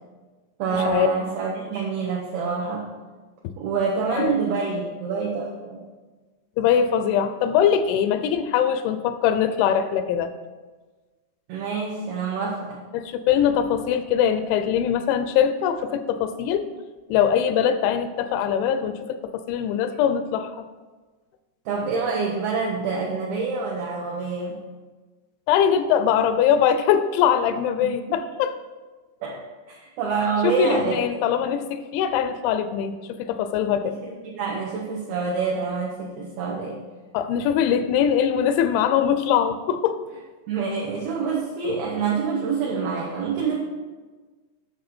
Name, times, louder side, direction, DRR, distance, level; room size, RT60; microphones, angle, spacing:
voice 1, 0.6-2.9 3.6-5.8 11.5-12.8 21.7-24.6 27.8-27.9 29.2-31.1 33.8-36.8 40.5-43.6, right 5 dB, 75° right, -2 dB, 2.3 m, -26 dB
voice 2, 6.6-10.3 12.9-16.7 17.1-19.2 19.5-20.7 25.5-28.6 30.4-33.9 37.1-40.0, left 8 dB, 85° left, 10 dB, 2.9 m, -22 dB
9.4 x 6.1 x 4.2 m, 1.3 s
omnidirectional pair, 5.3 m